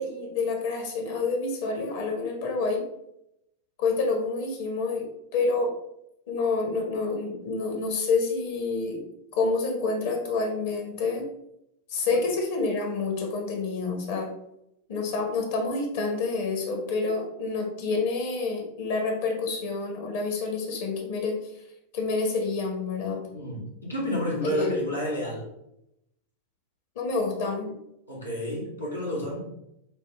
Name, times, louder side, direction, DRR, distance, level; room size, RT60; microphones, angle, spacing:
voice 1, 0.0-2.8 3.8-5.0 5.3-5.7 6.3-9.0 9.3-11.2 11.9-14.3 14.9-21.4 21.9-23.2 24.4-24.7 27.0-27.7, left 3 dB, 55° left, 2 dB, 1.0 m, -28 dB
voice 2, 23.3-25.5 28.1-29.4, equal, 85° left, -5 dB, 1.4 m, -30 dB
6.0 x 2.1 x 3.4 m, 0.81 s
figure-of-eight pair, 90°, 0 cm